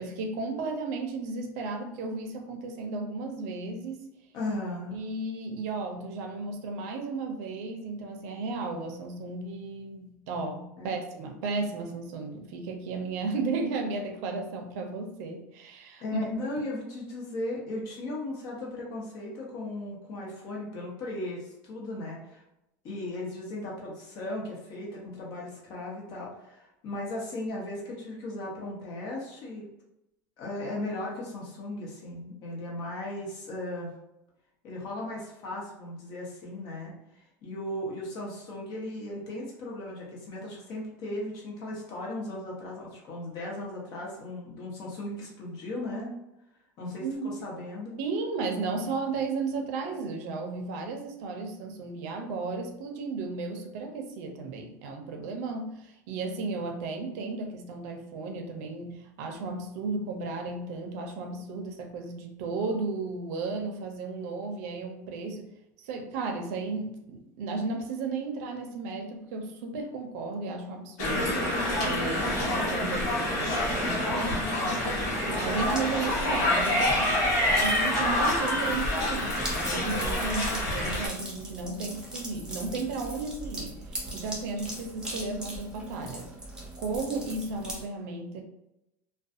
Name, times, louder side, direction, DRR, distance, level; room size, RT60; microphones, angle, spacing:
voice 1, 0.0-4.0 4.9-16.0 47.0-47.3 48.0-65.5 65.8-71.4 71.8-74.9 75.3-77.2 77.6-83.7 84.1-86.3 86.8-88.4, right 3 dB, 70° right, 4 dB, 0.5 m, -34 dB
voice 2, 4.3-5.0 10.8-10.9 16.0-22.4 22.8-29.6 30.4-33.9 34.6-36.9 37.4-46.1 46.8-47.9, left 1 dB, 50° left, -3 dB, 1.0 m, -37 dB
sound 1, 71.0-81.1, left 1 dB, 75° left, 1.1 m, -27 dB
sound 2, 75.5-87.8, right 1 dB, 10° right, 0.7 m, -40 dB
2.4 x 2.2 x 2.6 m, 0.87 s
supercardioid pair, 135°, 9 cm